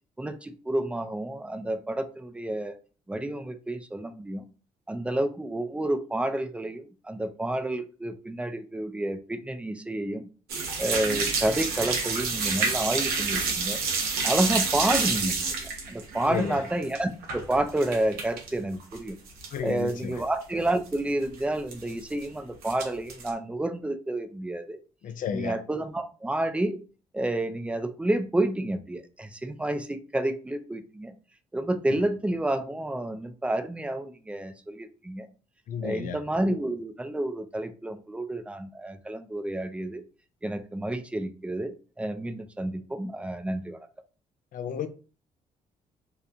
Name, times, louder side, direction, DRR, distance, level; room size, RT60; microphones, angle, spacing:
voice 1, 0.2-2.8 3.1-4.4 4.9-10.2 10.8-13.8 14.2-19.2 19.6-24.8 25.3-26.8 27.1-31.1 31.5-35.3 35.8-40.0 40.4-43.9, right 1 dB, 10° right, 0.4 m, -30 dB
sound 1, 10.5-18.5 18.8-19.6 19.9-20.0 20.4-20.5 20.7-20.9 21.7-22.2 22.6-23.3, right 4 dB, 85° right, 0.7 m, -29 dB
voice 2, 16.2-16.6 19.5-20.2 25.0-25.6 35.7-36.2 44.5-44.9, left 7 dB, 60° left, 0.4 m, -32 dB
2.9 x 2.1 x 2.4 m
supercardioid pair, 65°, 15 cm